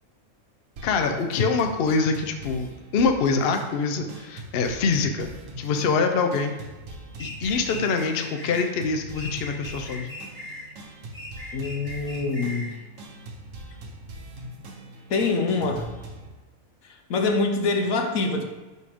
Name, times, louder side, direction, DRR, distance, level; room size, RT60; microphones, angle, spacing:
voice 1, 0.8-5.3 5.6-6.6 7.2-10.1, left 4 dB, 55° left, 5 dB, 0.7 m, -24 dB
sound 1, 0.8-16.3, right 1 dB, 65° right, 1.4 m, -42 dB
sound 2, 7.2-8.7 9.1-10.7 11.1-12.7, left 2 dB, 10° left, 1.7 m, -39 dB
voice 2, 11.5-12.7 15.1-15.9 16.8-18.4, left 3 dB, 75° left, 4 dB, 1.3 m, -25 dB
9.9 x 4.2 x 3.6 m, 1.2 s
omnidirectional pair, 1.5 m